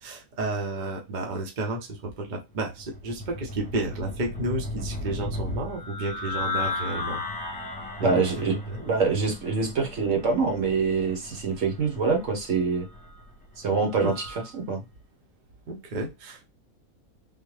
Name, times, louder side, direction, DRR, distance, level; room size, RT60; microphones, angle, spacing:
voice 1, 0.0-7.2 8.0-8.9 14.0-14.1 15.7-16.5, right 2 dB, 40° right, 2 dB, 0.7 m, -31 dB
sound 1, 2.8-14.5, left 2 dB, 10° left, 0.5 m, -36 dB
voice 2, 8.0-8.5 8.9-12.9 13.6-14.3 14.5-14.8, right 4 dB, 60° right, 3 dB, 1.2 m, -25 dB
3.6 x 2.2 x 3.1 m, 0.23 s
omnidirectional pair, 1.6 m